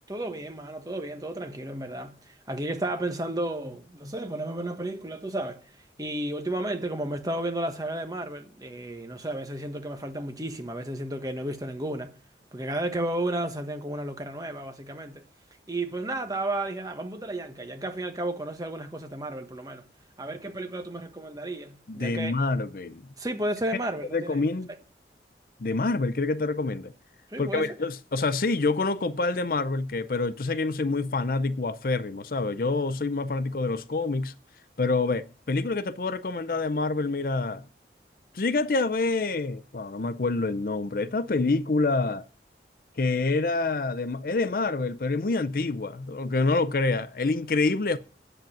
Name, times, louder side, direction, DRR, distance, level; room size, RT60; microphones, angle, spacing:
voice 1, 0.1-5.7 6.0-12.2 12.5-15.2 15.7-19.9 20.2-22.3 23.2-24.4 27.3-27.7, right 1 dB, 20° right, 1.3 m, -33 dB
voice 2, 21.9-23.0 24.1-24.7 25.6-26.9 27.4-34.3 34.8-37.6 38.3-42.2 43.0-48.0, left 3 dB, 50° left, 0.5 m, -27 dB
9.0 x 7.9 x 7.3 m
head